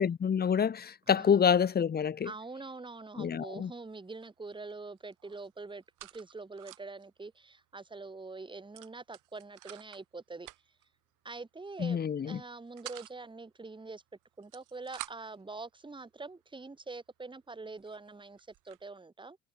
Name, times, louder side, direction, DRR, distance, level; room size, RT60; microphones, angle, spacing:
voice 1, 0.0-2.3 3.2-3.7 11.8-12.4, left 7 dB, 25° left, 1.0 m, -27 dB
voice 2, 1.1-1.4 2.2-10.5 11.2-14.0 14.4-19.4, right 3 dB, 10° right, 1.9 m, -45 dB
sound 1, 3.3-3.6 3.9-4.7 5.0-7.0 7.4-7.5 7.8-8.0 8.7-10.0 10.4-10.9 11.7-12.0 12.4-13.2 14.2-15.4 16.1-16.2 16.8-16.9 17.5-17.6 17.8-18.8, right 16 dB, 50° right, 1.5 m, -49 dB
figure-of-eight pair, 55°, 40 cm